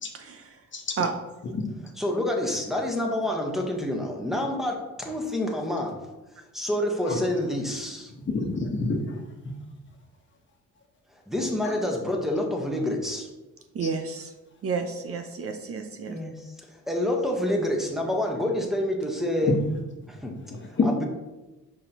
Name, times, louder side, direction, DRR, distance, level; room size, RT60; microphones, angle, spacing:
voice 1, 0.1-0.5 1.0-1.1 13.7-14.3 14.6-16.2, right 5 dB, 50° right, 6 dB, 0.7 m, -31 dB
voice 2, 0.7-1.1 1.5-1.7 7.0-7.2 8.3-9.2 11.6-11.9 13.8-13.9 19.4-19.5 20.5-20.9, left 3 dB, 40° left, 2 dB, 1.2 m, -28 dB
voice 3, 2.0-6.0 6.5-8.1 11.3-13.3 16.1-19.5 20.1-20.4 20.8-21.0, left 1 dB, ahead, 1 dB, 1.2 m, -28 dB
6.1 x 5.2 x 3.0 m, 1.1 s
cardioid pair, 90°, 30 cm